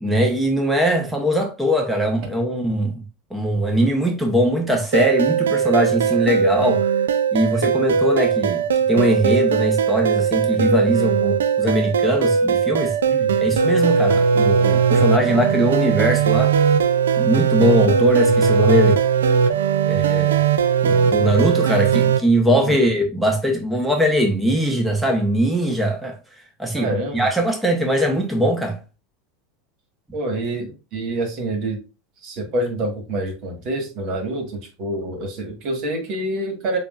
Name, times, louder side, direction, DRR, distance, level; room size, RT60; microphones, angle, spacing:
voice 1, 0.0-3.1 3.3-6.9 7.3-13.0 13.4-16.5 17.2-19.0 19.9-20.4 20.8-26.2 26.6-28.8, equal, 5° right, 0.9 m, -21 dB
sound 1, 4.9-22.2, right 6 dB, 90° right, 0.3 m, -19 dB
voice 2, 13.1-13.4 22.5-22.8 26.7-27.3 30.1-31.8 32.2-36.8, right 1 dB, 55° right, 1.5 m, -27 dB
6.8 x 2.5 x 2.4 m
hypercardioid pair, 100°, 0 cm